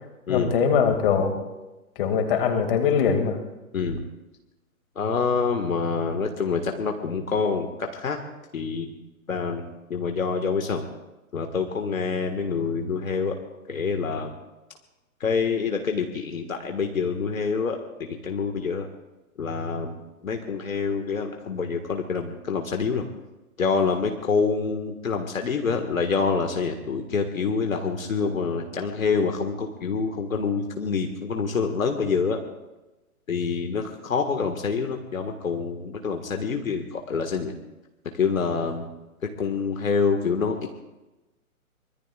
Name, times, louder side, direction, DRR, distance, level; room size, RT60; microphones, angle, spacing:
voice 1, 0.3-1.4 2.0-3.4, left 6 dB, 40° left, 5 dB, 2.4 m, -22 dB
voice 2, 3.7-4.1 5.0-8.2 8.5-8.9 9.3-10.9 11.3-13.3 13.7-14.3 15.2-18.9 19.4-20.0 20.2-23.1 23.6-32.4 33.3-37.5 38.2-38.9 39.4-40.6, left 5 dB, 65° left, 4 dB, 1.8 m, -26 dB
24.5 x 21.5 x 2.4 m, 1.0 s
figure-of-eight pair, 125°, 43 cm